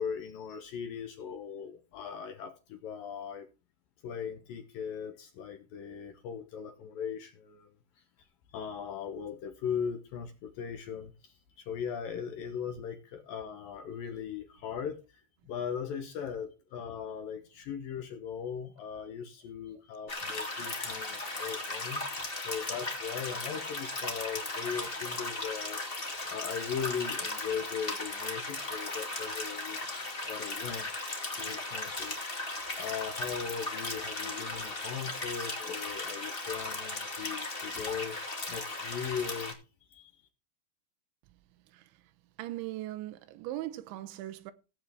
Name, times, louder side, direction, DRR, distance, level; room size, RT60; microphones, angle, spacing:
voice 1, 0.0-3.5 4.0-7.7 8.5-15.0 15.5-22.0 22.4-25.8 26.3-29.9 30.2-30.9 31.4-39.6 39.9-40.1, left 7 dB, 70° left, 2.2 m, -39 dB
sound 1, 20.1-39.5, left 2 dB, 45° left, 0.6 m, -37 dB
voice 2, 42.4-44.5, right 15 dB, 90° right, 3.2 m, -39 dB
16.5 x 8.4 x 3.5 m
omnidirectional pair, 5.2 m